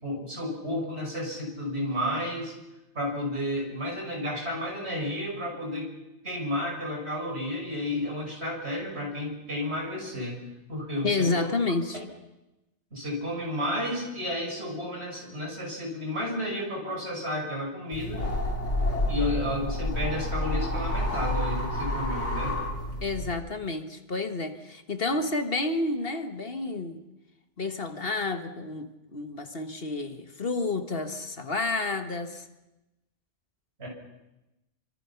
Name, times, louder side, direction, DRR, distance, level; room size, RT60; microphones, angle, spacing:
voice 1, 0.0-2.5 2.9-5.9 6.2-10.4 10.7-11.5 12.9-18.3 19.1-22.6 33.8-33.9, left 1 dB, 65° right, 0 dB, 6.6 m, -32 dB
voice 2, 11.0-12.0 23.0-27.0 27.6-32.4, left 3 dB, 55° left, 8 dB, 1.8 m, -30 dB
sound 1, 17.9-23.3, left 1 dB, 80° left, 3.7 m, -29 dB
28.5 x 24.5 x 5.9 m, 0.99 s
omnidirectional pair, 1.2 m